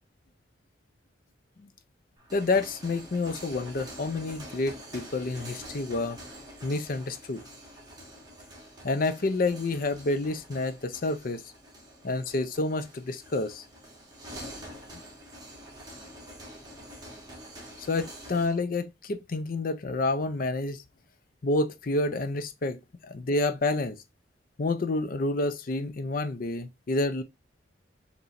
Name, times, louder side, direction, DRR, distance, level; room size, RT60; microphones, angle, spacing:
sound 1, 2.2-18.6, right 1 dB, 20° right, 1.6 m, -46 dB
voice 1, 2.3-6.2 6.6-7.4 8.8-11.4 12.0-13.6 17.8-20.8 21.4-24.0 24.6-27.2, left 2 dB, 50° left, 0.5 m, -29 dB
6.8 x 3.0 x 2.5 m
head